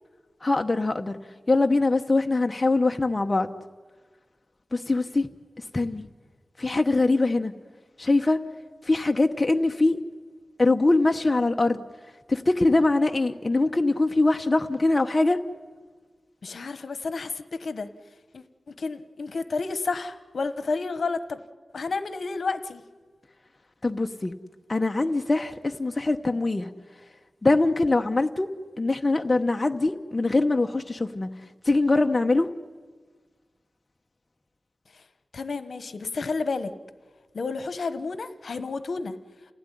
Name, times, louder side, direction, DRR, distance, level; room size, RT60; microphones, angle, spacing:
voice 1, 0.4-1.2 1.5-3.5 4.7-5.3 5.7-6.1 6.6-7.5 8.0-8.4 8.9-10.0 10.6-11.8 12.3-15.4 23.8-24.3 24.7-26.7 27.4-28.5 28.8-31.3 31.7-32.5, left 2 dB, 30° left, 4 dB, 1.0 m, -23 dB
voice 2, 16.4-17.9 18.3-21.4 21.7-22.8 35.3-36.7 37.3-39.2, left 4 dB, 70° left, 11 dB, 1.2 m, -31 dB
29.0 x 16.5 x 10.0 m, 1.4 s
wide cardioid pair, 115°, 0 cm